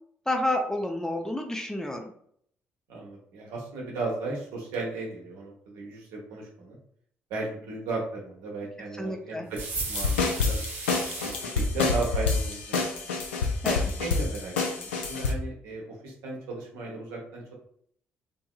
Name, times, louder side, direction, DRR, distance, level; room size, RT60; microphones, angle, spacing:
voice 1, 0.3-2.1 9.0-9.5 13.6-13.9, left 1 dB, 10° left, 3 dB, 0.5 m, -29 dB
voice 2, 2.9-6.8 7.3-9.6 9.9-10.6 11.2-12.9 13.9-17.5, right 3 dB, 70° right, -2 dB, 0.8 m, -35 dB
sound 1, 9.5-11.4, right 3 dB, 35° right, 1.0 m, -35 dB
sound 2, 9.8-15.3, left 4 dB, 80° left, 0.4 m, -27 dB
2.7 x 2.6 x 2.3 m, 0.64 s
figure-of-eight pair, 45°, 6 cm